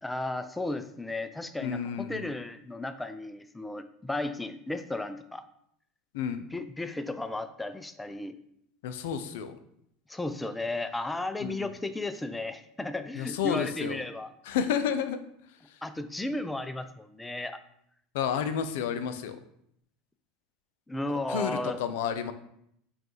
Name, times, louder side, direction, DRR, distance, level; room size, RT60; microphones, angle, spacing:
voice 1, 0.0-5.4 6.5-8.3 10.1-14.3 15.8-17.6 20.9-21.8, left 2 dB, 10° left, 10 dB, 0.3 m, -34 dB
voice 2, 1.6-2.3 6.1-6.4 8.8-9.6 11.4-11.6 13.1-14.0 14.5-15.2 15.7-15.8 18.1-19.4 21.1-22.3, left 8 dB, 75° left, 10 dB, 0.4 m, -31 dB
5.1 x 2.3 x 3.0 m, 0.73 s
hypercardioid pair, 95°, 0 cm